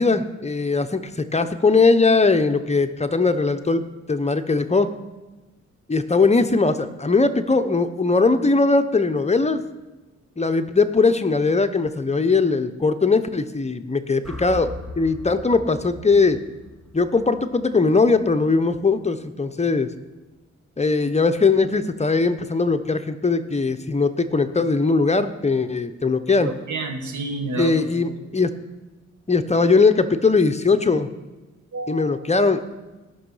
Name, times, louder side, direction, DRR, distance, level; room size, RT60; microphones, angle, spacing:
voice 1, 0.0-4.9 5.9-9.6 10.4-16.4 16.9-19.9 20.8-26.5 27.6-28.5 29.3-31.1 31.9-32.7, left 4 dB, 20° left, 9 dB, 0.8 m, -20 dB
sound 1, 14.2-18.5, left 2 dB, ahead, 2.1 m, -40 dB
voice 2, 26.3-28.1 31.7-32.0, right 2 dB, 80° right, 3 dB, 1.9 m, -30 dB
17.5 x 6.2 x 5.6 m, 1.2 s
cardioid pair, 70°, 29 cm